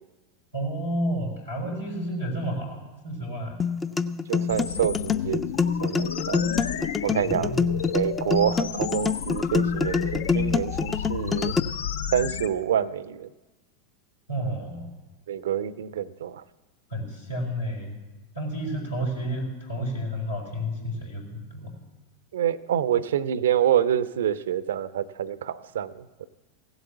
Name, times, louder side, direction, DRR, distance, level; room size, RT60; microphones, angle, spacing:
voice 1, 0.5-3.6 7.1-7.6 14.3-14.9 16.9-18.0 18.3-21.7, equal, 85° left, -2 dB, 4.0 m, -31 dB
sound 1, 3.6-11.6, left 5 dB, 15° left, 0.4 m, -26 dB
voice 2, 4.3-6.4 7.0-7.5 7.9-11.5 12.1-13.3 15.3-16.4 22.3-26.3, right 10 dB, 65° right, 18 dB, 0.5 m, -27 dB
sound 2, 4.5-12.5, left 7 dB, 65° left, 0.5 m, -32 dB
16.0 x 8.1 x 8.0 m, 1.2 s
figure-of-eight pair, 85°, 0 cm